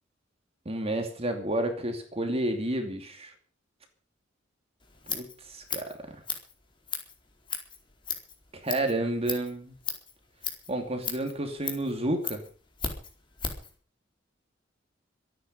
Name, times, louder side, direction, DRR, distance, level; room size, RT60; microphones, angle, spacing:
voice 1, 0.6-3.3 5.1-6.2 8.5-9.7 10.7-12.4, right 1 dB, 30° right, 5 dB, 2.7 m, -31 dB
Scissors, 4.8-13.7, left 5 dB, 25° left, 4.4 m, -37 dB
25.5 x 9.8 x 5.5 m, 0.41 s
head